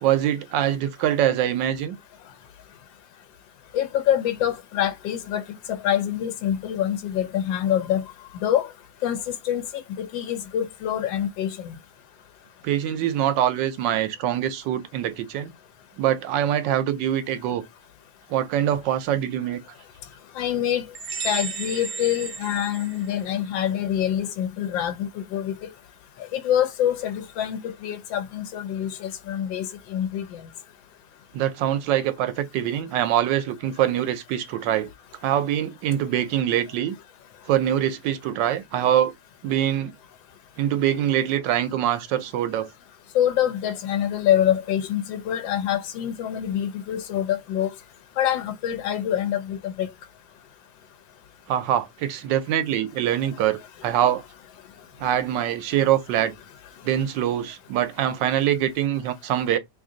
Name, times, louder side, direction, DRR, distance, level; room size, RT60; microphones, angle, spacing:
voice 1, 0.0-2.0 12.6-15.5 16.0-17.6 18.3-19.6 31.3-34.9 35.2-36.9 37.5-39.1 39.4-39.9 40.6-42.7 51.5-54.2 55.0-56.3 56.8-59.6, right 11 dB, 80° right, 1.2 m, -24 dB
voice 2, 3.7-8.0 8.3-8.7 9.0-9.6 10.0-11.8 20.4-20.9 21.2-25.7 26.3-30.4 43.1-47.7 48.2-49.9, left 10 dB, 85° left, 1.3 m, -25 dB
sound 1, 20.9-23.5, right 6 dB, 55° right, 0.8 m, -34 dB
3.2 x 2.6 x 3.7 m
omnidirectional pair, 2.0 m